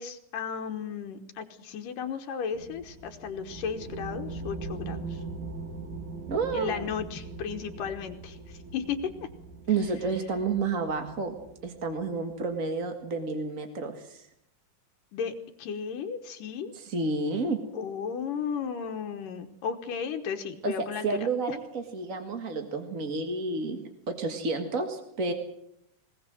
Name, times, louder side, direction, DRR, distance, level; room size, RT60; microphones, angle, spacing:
voice 1, 0.0-5.2 6.5-9.1 15.1-16.7 17.7-21.1 21.5-21.6, left 7 dB, 75° left, 6 dB, 2.7 m, -34 dB
sound 1, 2.5-12.5, right 3 dB, 80° right, 5.1 m, -41 dB
voice 2, 6.3-6.9 9.7-11.3 11.6-14.3 16.7-17.6 20.6-20.7 21.0-23.8 24.1-25.3, right 4 dB, 35° right, 6 dB, 1.4 m, -30 dB
20.5 x 19.5 x 7.7 m, 0.75 s
omnidirectional pair, 3.9 m